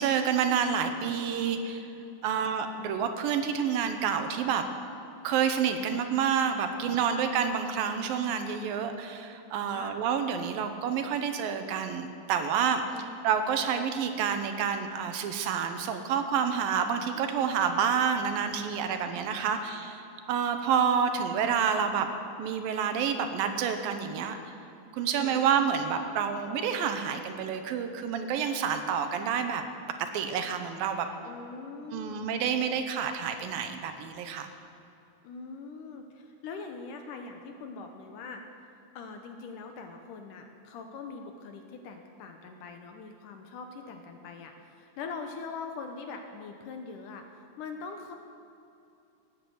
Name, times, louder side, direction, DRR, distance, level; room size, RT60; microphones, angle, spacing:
voice 1, 0.0-1.8 2.2-4.7 5.2-19.9 20.3-22.1 22.4-24.4 24.9-29.6 30.0-31.1 31.9-34.5, right 7 dB, 80° right, 7 dB, 2.6 m, -28 dB
voice 2, 0.9-1.9 2.3-2.5 6.8-7.2 9.7-10.0 12.8-13.1 17.1-17.6 19.5-19.7 25.0-25.5 31.2-32.3 35.2-38.4 39.0-48.1, left 4 dB, 70° left, 5 dB, 2.2 m, -43 dB
18.5 x 8.7 x 7.9 m, 2.6 s
omnidirectional pair, 4.2 m